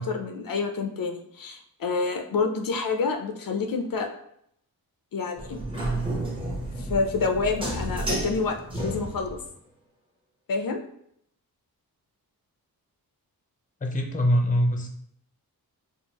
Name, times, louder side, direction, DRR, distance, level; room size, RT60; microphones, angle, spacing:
voice 1, 0.0-4.1 5.1-5.6 6.8-9.4 10.5-10.8, left 4 dB, 65° left, 4 dB, 0.5 m, -28 dB
sound 1, 5.4-9.5, right 1 dB, 15° right, 0.9 m, -31 dB
voice 2, 13.8-14.9, equal, 20° left, 2 dB, 0.6 m, -23 dB
4.5 x 2.4 x 2.9 m, 0.70 s
wide cardioid pair, 115°, 37 cm